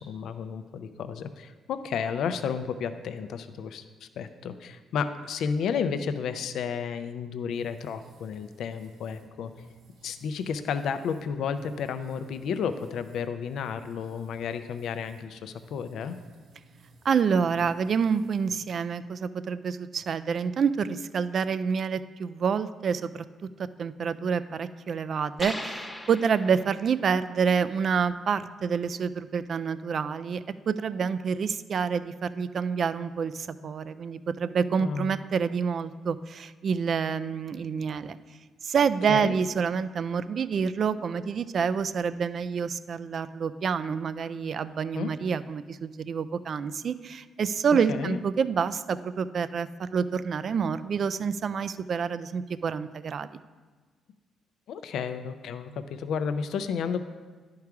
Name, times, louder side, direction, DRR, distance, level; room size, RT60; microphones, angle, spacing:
voice 1, 0.0-9.5 10.0-16.2 34.8-35.1 39.1-39.4 44.9-45.1 47.9-48.2 54.7-57.0, left 6 dB, 75° left, 10 dB, 0.4 m, -32 dB
sound 1, 7.5-18.5, right 1 dB, 80° right, 1.4 m, -55 dB
voice 2, 17.0-23.2 23.8-38.2 38.6-53.3, right 6 dB, 55° right, 13 dB, 0.3 m, -28 dB
sound 2, 25.4-26.9, left 1 dB, 5° left, 0.9 m, -38 dB
10.5 x 4.7 x 4.7 m, 1.5 s
cardioid pair, 90°, 0 cm